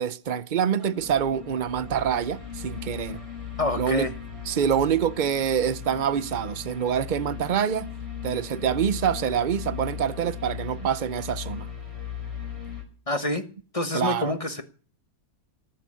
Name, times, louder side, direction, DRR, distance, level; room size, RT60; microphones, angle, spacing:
voice 1, 0.0-3.2 3.8-4.1 4.5-7.9 8.2-11.7 13.9-14.3, right 8 dB, 65° right, 0.4 m, -26 dB
sound 1, 0.8-12.8, left 7 dB, 20° right, 4.3 m, -38 dB
voice 2, 3.6-4.1 13.1-13.4 13.7-14.6, left 2 dB, 25° left, 1.0 m, -27 dB
14.5 x 7.9 x 8.4 m
omnidirectional pair, 1.8 m